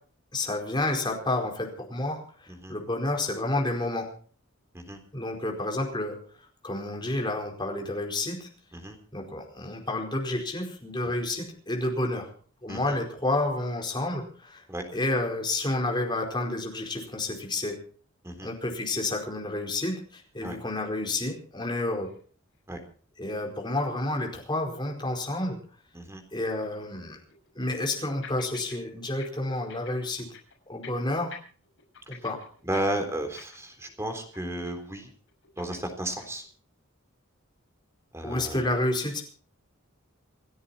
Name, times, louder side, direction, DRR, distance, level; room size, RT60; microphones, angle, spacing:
voice 1, 0.3-4.1 5.1-6.2 6.6-8.5 9.1-12.3 12.6-14.6 14.9-17.8 18.4-22.1 23.2-25.6 26.3-27.2 27.5-30.3 30.7-31.4 32.1-32.4 38.2-39.2, left 2 dB, 20° left, 1 dB, 4.7 m, -30 dB
sound 1, 22.0-22.2 22.5-22.6 23.3-23.4 26.5-26.6 27.3-28.0 28.2-28.8 29.0-29.3 29.5-30.5 30.8-31.0 31.3-33.9 34.2-34.4 34.7-35.0 35.3-36.4, left 7 dB, 65° left, 6.4 m, -47 dB
voice 2, 32.6-35.1 35.6-36.4 38.1-38.7, right 1 dB, 15° right, 5 dB, 3.7 m, -33 dB
28.5 x 10.5 x 4.4 m, 0.43 s
head